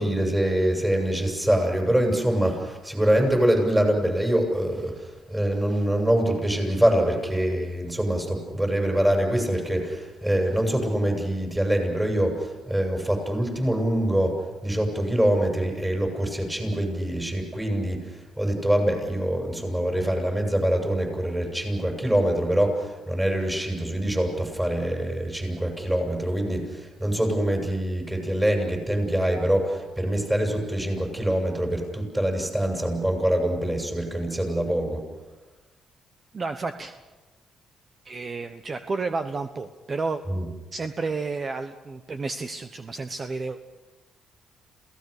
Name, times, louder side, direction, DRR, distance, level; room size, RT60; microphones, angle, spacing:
voice 1, 0.0-35.0 40.3-40.5, right 1 dB, 10° right, 2 dB, 7.2 m, -24 dB
voice 2, 36.3-36.9 38.0-40.2 40.7-43.6, right 3 dB, 35° right, 8 dB, 1.1 m, -31 dB
28.0 x 17.5 x 6.7 m, 1.2 s
cardioid pair, 90°, 0 cm